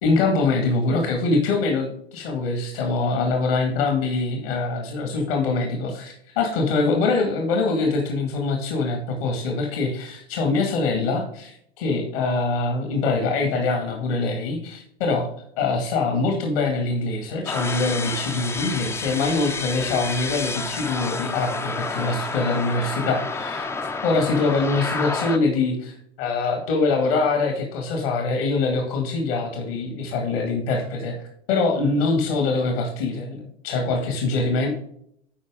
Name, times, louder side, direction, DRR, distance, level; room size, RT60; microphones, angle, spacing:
voice 1, 0.0-15.3 15.6-23.7 24.0-34.7, left 3 dB, 70° left, 2 dB, 2.2 m, -24 dB
sound 1, 17.5-25.4, left 3 dB, 10° left, 0.5 m, -29 dB
10.5 x 4.6 x 3.7 m, 0.69 s
hypercardioid pair, 105°, 31 cm